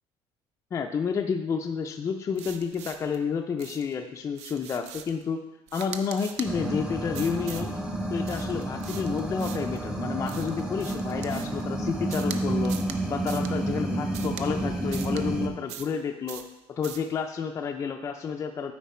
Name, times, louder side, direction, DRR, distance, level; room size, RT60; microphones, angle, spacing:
voice 1, 0.7-5.4 5.7-7.7 8.1-12.8 13.1-16.4 16.8-18.7, left 6 dB, 25° left, 3 dB, 0.4 m, -30 dB
sound 1, 2.3-3.2 3.6-3.9 4.3-5.2 5.7-6.5 7.1-7.7 8.2-9.8 10.3-11.6 12.1-12.4 12.6-13.0 13.3-13.5 14.1-14.5 14.9-15.2 15.7-16.0 16.3-16.5 16.8-17.1, right 9 dB, 75° right, 0.6 m, -42 dB
sound 2, 6.4-15.5, right 1 dB, 5° right, 0.7 m, -30 dB
9.2 x 4.4 x 4.3 m, 0.96 s
cardioid pair, 155°, 11 cm